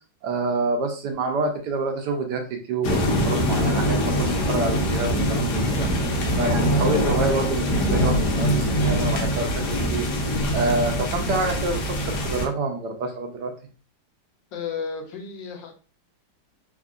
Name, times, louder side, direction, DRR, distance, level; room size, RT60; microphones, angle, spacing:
voice 1, 0.2-5.9 6.3-13.5, right 3 dB, 75° right, 3 dB, 1.2 m, -27 dB
sound 1, 2.8-12.5, equal, 65° left, 1.2 m, -23 dB
voice 2, 14.5-15.7, left 6 dB, 85° left, 4 dB, 1.4 m, -33 dB
3.5 x 2.3 x 2.4 m, 0.37 s
omnidirectional pair, 2.0 m